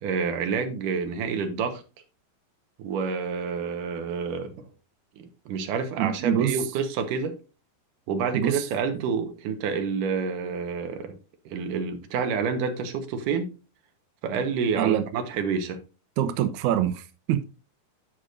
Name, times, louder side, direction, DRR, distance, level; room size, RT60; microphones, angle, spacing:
voice 1, 0.0-1.8 2.8-4.7 5.2-7.4 8.1-11.2 11.5-13.5 14.2-15.8, right 5 dB, 70° right, 2.3 m, -28 dB
voice 2, 6.0-6.5 8.3-8.7 14.8-15.0 16.2-17.4, right 11 dB, 90° right, 1.7 m, -25 dB
14.5 x 5.0 x 2.5 m
omnidirectional pair, 4.6 m